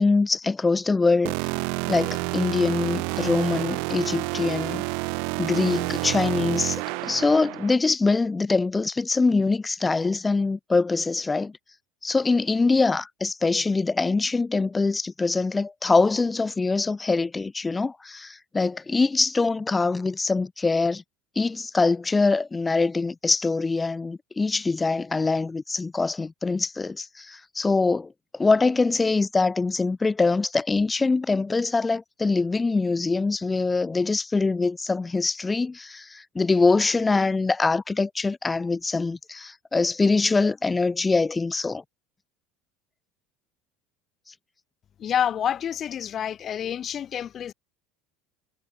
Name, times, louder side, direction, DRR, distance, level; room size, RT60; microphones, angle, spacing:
voice 1, 0.0-1.3 1.9-4.9 5.4-11.5 12.0-21.0 21.4-41.8, left 3 dB, 15° left, 4.5 m, -23 dB
sound 1, 1.2-7.7, right 35 dB, 70° right, 2.1 m, -29 dB
voice 2, 45.0-47.5, left 9 dB, 35° left, 3.5 m, -28 dB
cardioid pair, 140°, 0 cm